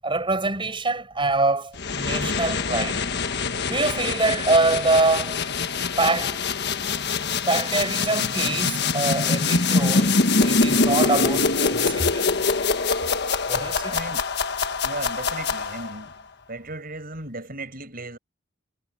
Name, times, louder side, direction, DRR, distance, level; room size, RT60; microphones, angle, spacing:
voice 1, 0.0-3.0 3.7-5.4 6.0-6.4 7.5-12.5 13.5-14.0, right 3 dB, 25° right, 7.6 m, -25 dB
sound 1, 1.7-16.0, left 4 dB, 55° left, 1.5 m, -24 dB
voice 2, 13.9-14.2 14.8-16.1 16.5-18.2, right 2 dB, 45° right, 6.7 m, -35 dB
head